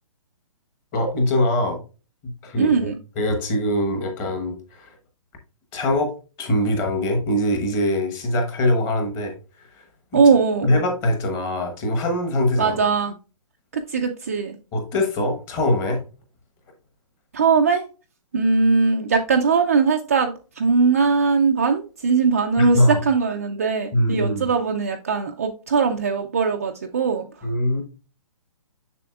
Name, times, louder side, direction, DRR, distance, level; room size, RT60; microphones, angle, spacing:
voice 1, 0.9-1.8 2.2-2.9 3.2-5.0 5.7-9.3 9.7-10.2 10.6-12.7 14.7-16.0 22.6-23.0 23.9-24.5 27.4-27.8, left 1 dB, 15° left, 1.0 m, -23 dB
voice 2, 2.6-3.0 10.1-10.7 12.6-13.1 13.7-14.6 17.3-17.8 18.3-27.5, right 5 dB, 25° right, 0.4 m, -20 dB
7.0 x 6.7 x 2.3 m
hypercardioid pair, 170°, 18 cm